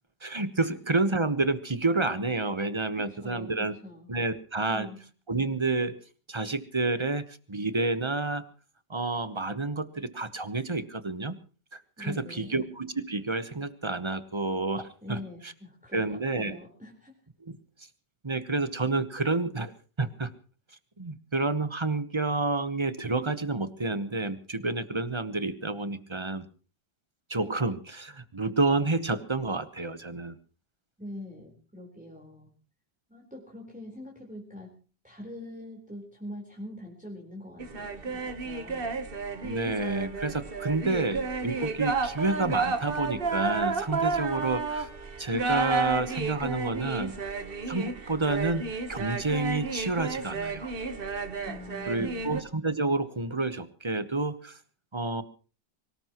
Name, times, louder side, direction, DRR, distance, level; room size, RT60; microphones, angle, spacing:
voice 1, 0.2-3.7 4.1-4.9 5.3-6.0 6.3-8.5 8.9-11.3 11.7-15.5 15.9-16.6 17.5-17.6 18.2-19.7 20.0-20.3 21.0-26.4 27.3-30.3 39.4-44.9 45.2-47.1 47.7-48.6 48.9-50.7 51.9-54.6 54.9-55.2, right 3 dB, 20° right, 12 dB, 0.9 m, -29 dB
voice 2, 3.0-3.5 3.8-4.1 4.6-5.0 12.0-12.6 15.0-17.1 31.0-32.5 33.1-34.7 35.0-38.9 51.4-52.4, left 1 dB, 5° right, -1 dB, 4.0 m, -43 dB
sound 1, 37.6-52.4, right 4 dB, 35° right, 1.3 m, -32 dB
24.5 x 19.0 x 3.0 m, 0.37 s
omnidirectional pair, 1.8 m